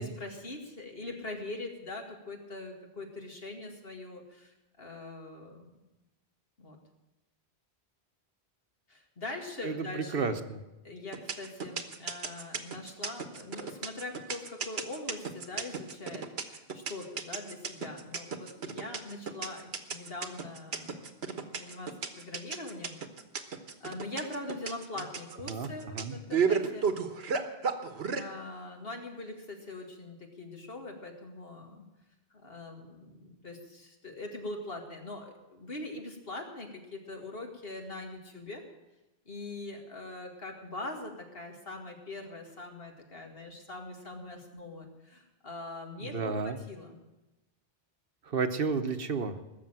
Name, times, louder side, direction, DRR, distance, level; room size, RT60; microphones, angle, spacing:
voice 1, 0.0-5.8 6.6-6.8 8.9-10.3 10.8-21.1 21.4-23.0 23.8-26.9 28.1-31.9 32.3-38.6 39.3-47.0, left 2 dB, 65° left, 2 dB, 2.4 m, -42 dB
voice 2, 9.6-10.6 25.5-26.2 46.0-46.6 48.3-49.4, right 4 dB, 60° right, 9 dB, 1.2 m, -32 dB
sound 1, 11.1-28.2, right 6 dB, 75° right, 1.5 m, -33 dB
20.0 x 7.0 x 9.0 m, 1.0 s
omnidirectional pair, 1.1 m